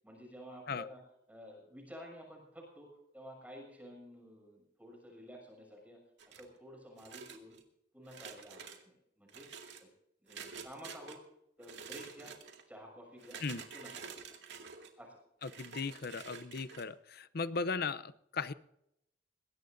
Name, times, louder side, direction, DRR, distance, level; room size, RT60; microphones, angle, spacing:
voice 1, 0.0-1.0 1.3-6.0 6.3-7.5 7.9-9.5 9.8-9.9 10.2-11.2 11.6-12.4 12.7-14.4 15.0-15.2, equal, 10° right, 0 dB, 6.6 m, -52 dB
sound 1, 6.2-6.6 7.0-7.6 8.1-8.8 9.3-9.8 10.3-11.2 11.6-12.6 13.2-14.9 15.4-16.9, right 6 dB, 75° right, 2.2 m, -49 dB
voice 2, 15.4-18.5, left 4 dB, 60° left, 15 dB, 0.7 m, -37 dB
21.5 x 17.0 x 2.7 m, 0.78 s
head